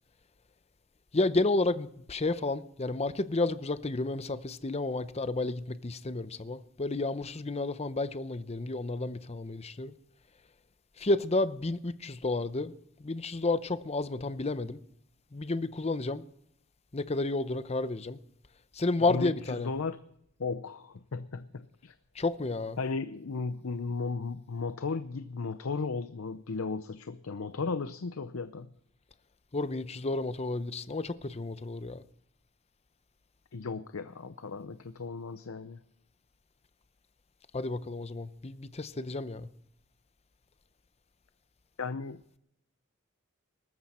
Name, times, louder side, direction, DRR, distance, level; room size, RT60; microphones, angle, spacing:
voice 1, 1.1-9.9 11.0-12.7 13.0-14.8 15.3-16.2 16.9-18.2 18.7-19.7 22.2-22.8 29.5-32.0 37.5-39.5, left 2 dB, 30° left, 0.7 m, -31 dB
voice 2, 19.1-20.0 20.4-21.9 22.8-28.7 33.5-35.8 41.8-42.2, left 4 dB, 80° left, 0.6 m, -35 dB
19.5 x 14.0 x 4.3 m
head